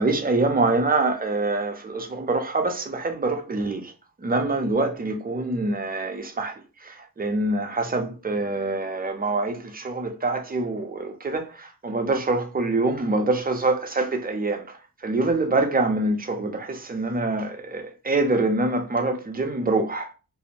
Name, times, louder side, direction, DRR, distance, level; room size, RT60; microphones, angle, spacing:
voice 1, 0.0-3.9 4.2-20.1, right 2 dB, 25° right, 0.4 m, -25 dB
2.5 x 2.0 x 2.7 m
wide cardioid pair, 100°, 36 cm